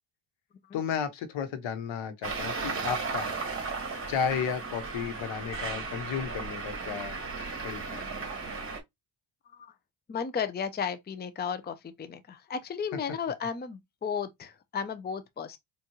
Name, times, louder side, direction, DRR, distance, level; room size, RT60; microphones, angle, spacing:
voice 1, 0.7-3.3 4.1-7.2 7.6-8.1, left 7 dB, 70° left, 1.1 m, -33 dB
Traffic noise roadway noise, 2.2-8.8, right 4 dB, 25° right, 1.9 m, -35 dB
voice 2, 10.1-15.6, left 6 dB, 20° left, 0.6 m, -34 dB
4.5 x 2.5 x 3.0 m
cardioid pair, 95°, 47 cm